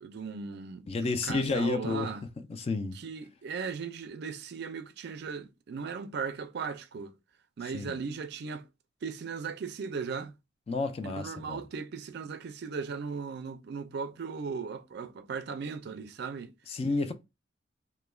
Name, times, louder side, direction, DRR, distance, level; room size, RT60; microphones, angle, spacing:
voice 1, 0.0-2.2 2.9-7.1 7.6-8.7 9.0-10.3 11.0-16.5, right 5 dB, 60° right, 0.4 m, -37 dB
voice 2, 0.9-2.1 2.5-3.0 7.7-8.0 10.7-11.6 16.7-17.1, left 3 dB, 35° left, 0.3 m, -31 dB
2.2 x 2.1 x 3.1 m
head